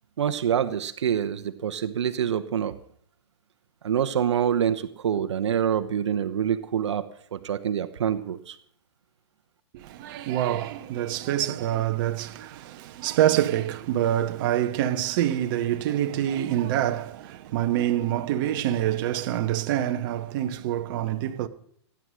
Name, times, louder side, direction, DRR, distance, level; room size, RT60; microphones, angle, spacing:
voice 1, 0.2-2.8 3.8-8.6, right 9 dB, 80° right, 1.0 m, -26 dB
voice 2, 9.7-21.5, right 12 dB, 50° right, 1.1 m, -26 dB
16.0 x 9.9 x 6.3 m
hypercardioid pair, 140°, 15 cm